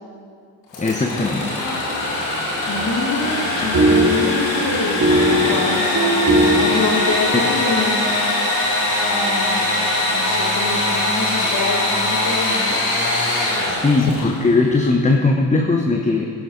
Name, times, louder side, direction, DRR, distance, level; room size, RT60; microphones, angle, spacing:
Engine / Sawing, 0.7-14.4, left 1 dB, 90° left, 2.8 m, -22 dB
voice 1, 0.8-1.6 7.3-7.5 13.8-16.3, left 3 dB, 15° left, 2 dB, 1.0 m, -18 dB
voice 2, 1.6-2.4 2.7-5.0 5.4-5.9 6.6-8.2 9.1-9.8 10.1-12.8 14.0-14.4, left 4 dB, 40° left, 1 dB, 2.2 m, -26 dB
sound 1, 3.2-7.5, right 1 dB, 35° right, 2.7 m, -19 dB
12.0 x 12.0 x 4.0 m, 2.2 s
hypercardioid pair, 55°, 47 cm